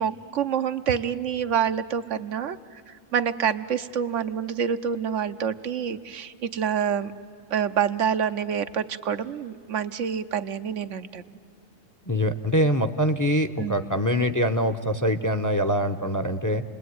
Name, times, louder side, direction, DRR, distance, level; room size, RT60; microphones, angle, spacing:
voice 1, 0.0-2.8 3.1-7.1 7.5-11.2 13.6-13.9, right 8 dB, 80° right, 10 dB, 1.2 m, -27 dB
voice 2, 12.1-16.6, equal, 20° left, 9 dB, 0.7 m, -24 dB
29.5 x 20.5 x 9.4 m, 2.7 s
omnidirectional pair, 1.3 m